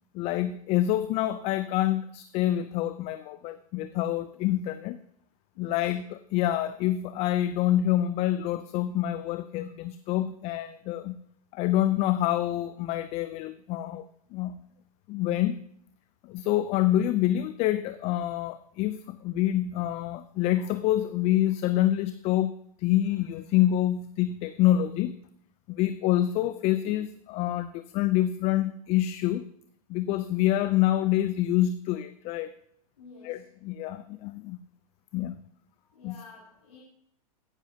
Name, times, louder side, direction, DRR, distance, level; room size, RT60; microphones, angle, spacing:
voice 1, 0.1-5.0 5.6-11.2 11.5-14.6 15.1-15.6 16.2-22.5 22.8-25.2 25.7-29.5 29.9-32.5 33.2-34.6 35.1-35.4 36.0-36.2, left 13 dB, 35° left, 13 dB, 0.4 m, -27 dB
voice 2, 5.5-5.9 33.0-33.5 35.8-36.8, left 4 dB, 80° left, -6 dB, 3.4 m, -51 dB
16.5 x 7.1 x 2.7 m, 0.70 s
hypercardioid pair, 115°, 19 cm